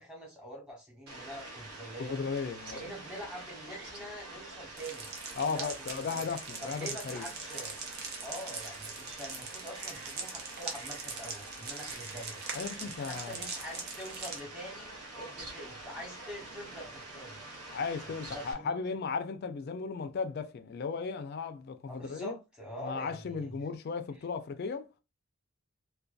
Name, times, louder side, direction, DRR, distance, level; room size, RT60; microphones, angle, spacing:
voice 1, 0.0-2.1 2.7-5.1 5.4-6.2 6.6-7.7 8.2-12.4 12.8-14.9 15.1-17.4 18.3-18.8 21.9-23.6, equal, 5° right, 0.9 m, -45 dB
Fowl, 1.1-18.5, right 2 dB, 90° right, 0.8 m, -46 dB
voice 2, 2.0-2.9 5.4-7.3 12.5-13.4 17.7-22.4 22.8-24.9, left 5 dB, 45° left, 0.3 m, -36 dB
sound 1, 4.8-14.4, right 5 dB, 45° right, 0.6 m, -42 dB
2.5 x 2.2 x 2.2 m
head